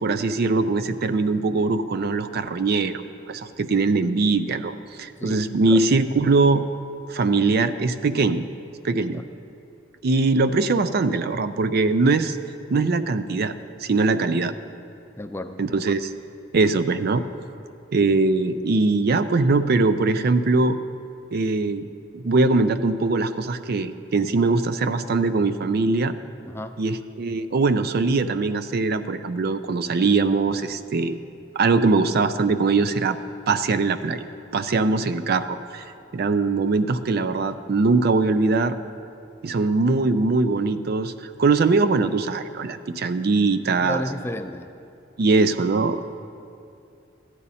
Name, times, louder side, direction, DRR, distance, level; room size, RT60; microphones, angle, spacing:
voice 1, 0.0-6.6 7.1-8.4 8.8-9.2 10.0-12.4 12.7-13.5 13.8-14.5 15.6-16.1 16.5-17.2 17.9-20.8 21.3-21.9 22.1-26.1 26.8-31.2 31.6-33.2 33.5-34.2 34.5-35.8 36.1-38.8 39.4-44.0 45.2-46.0, right 3 dB, 55° right, 11 dB, 0.4 m, -21 dB
voice 2, 5.2-5.8 9.1-9.2 15.2-15.6 26.4-26.7 43.8-44.7, left 1 dB, 10° left, 8 dB, 0.4 m, -32 dB
14.0 x 9.9 x 4.1 m, 2.6 s
head